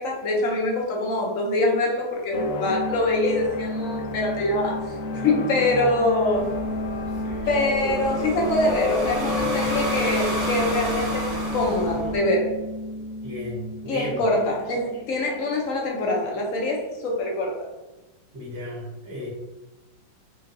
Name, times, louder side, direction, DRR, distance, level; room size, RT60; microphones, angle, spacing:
voice 1, 0.0-4.9 5.2-6.5 7.5-12.5 13.9-17.5, left 2 dB, 55° left, -1 dB, 1.1 m, -24 dB
sound 1, 2.3-15.4, left 2 dB, 90° left, 0.6 m, -30 dB
voice 2, 5.1-6.0 7.4-7.5 13.2-14.2 18.3-19.3, left 1 dB, 75° right, -6 dB, 1.9 m, -35 dB
sound 2, 6.3-12.2, right 1 dB, 40° right, 1.3 m, -31 dB
5.3 x 2.4 x 2.7 m, 1.1 s
omnidirectional pair, 2.1 m